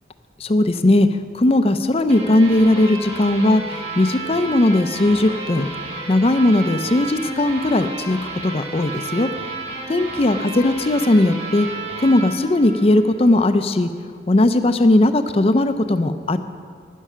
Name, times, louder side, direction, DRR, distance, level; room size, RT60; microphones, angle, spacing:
voice 1, 0.4-1.1 1.3-3.6 4.0-5.7 6.1-8.2 8.4-9.3 9.9-11.7 12.0-13.9 14.3-16.4, left 1 dB, 35° left, 10 dB, 0.5 m, -17 dB
sound 1, 2.1-13.4, right 3 dB, 35° right, 1.7 m, -32 dB
12.0 x 10.0 x 5.7 m, 2.1 s
head